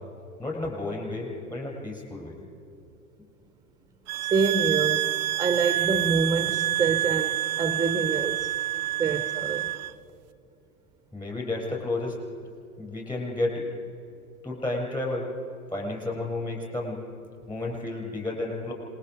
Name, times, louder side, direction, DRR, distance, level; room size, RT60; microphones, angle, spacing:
voice 1, 0.4-2.4 11.1-12.2 12.8-13.7 14.4-15.3 15.7-17.0 17.5-18.7, left 2 dB, 10° left, 6.8 m, -31 dB
sound 1, 4.1-9.9, right 14 dB, 35° right, 0.4 m, -27 dB
voice 2, 4.2-5.1 5.4-8.6 9.0-9.7, right 5 dB, 10° right, 0.8 m, -26 dB
27.0 x 21.5 x 4.8 m
figure-of-eight pair, 95°, 43 cm